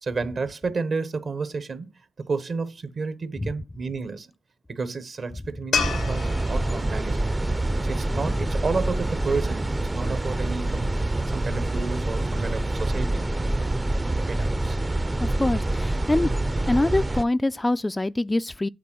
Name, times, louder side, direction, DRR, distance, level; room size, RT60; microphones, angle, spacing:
voice 1, 0.0-1.9 2.3-4.3 4.7-7.2 7.8-10.9 11.3-13.3 14.2-14.8, right 4 dB, 60° right, 1.1 m, -31 dB
sound 1, 5.7-9.0 12.2-12.3, left 5 dB, 80° left, 0.9 m, -32 dB
sound 2, 5.8-17.2, right 2 dB, 25° right, 0.6 m, -26 dB
voice 2, 15.3-16.3 16.7-18.7, left 2 dB, 20° left, 0.3 m, -24 dB
8.4 x 3.7 x 6.1 m
supercardioid pair, 45°, 0 cm